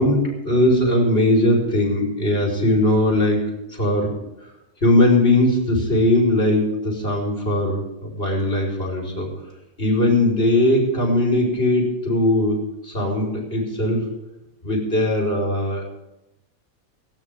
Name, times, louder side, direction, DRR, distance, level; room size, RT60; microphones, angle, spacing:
voice 1, 0.0-4.1 4.4-4.5 4.8-9.3 9.8-14.1 14.6-15.8, left 1 dB, 40° left, -2 dB, 4.9 m, -20 dB
18.5 x 17.5 x 3.8 m, 0.91 s
omnidirectional pair, 1.5 m